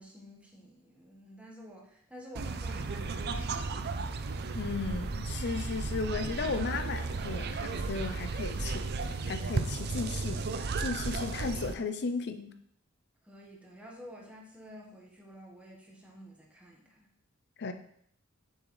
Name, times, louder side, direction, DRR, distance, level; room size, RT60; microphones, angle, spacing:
voice 1, 0.0-4.0 13.2-17.1, equal, 5° right, -2 dB, 1.4 m, -50 dB
sound 1, 2.4-11.7, right 3 dB, 50° right, 0.5 m, -34 dB
voice 2, 4.5-12.5 17.6-17.7, left 4 dB, 55° left, 9 dB, 0.6 m, -35 dB
6.6 x 6.4 x 3.2 m, 0.68 s
head